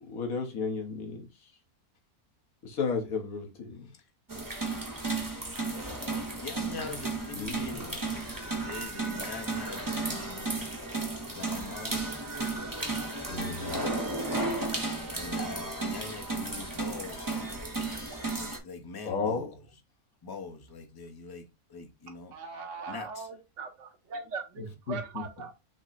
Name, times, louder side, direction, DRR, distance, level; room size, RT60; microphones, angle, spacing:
voice 1, 0.1-1.3 2.6-3.9 7.3-7.6 13.3-13.8 19.0-19.5 24.9-25.2, left 5 dB, 70° left, 1.5 m, -33 dB
sound 1, 4.3-18.6, right 2 dB, 20° right, 0.7 m, -34 dB
voice 2, 6.4-10.7 11.3-12.0 12.9-13.4 15.1-17.6 18.4-19.6 20.2-22.3 22.9-23.3, left 4 dB, 25° left, 0.5 m, -43 dB
voice 3, 22.3-23.7 24.1-25.5, right 4 dB, 55° right, 1.1 m, -39 dB
5.9 x 2.1 x 4.0 m
omnidirectional pair, 1.6 m